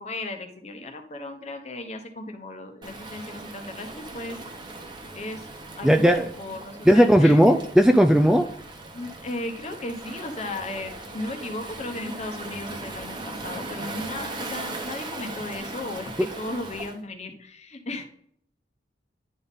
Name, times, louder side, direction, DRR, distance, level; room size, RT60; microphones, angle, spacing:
voice 1, 0.0-4.4 5.1-5.5 5.8-7.6 8.9-18.0, left 2 dB, 40° left, 5 dB, 1.0 m, -35 dB
Waves surf, 2.8-17.0, right 2 dB, 25° right, 1.0 m, -38 dB
voice 2, 5.8-6.3 6.9-8.5, equal, 5° right, 7 dB, 0.3 m, -16 dB
10.5 x 4.1 x 3.6 m, 0.66 s
head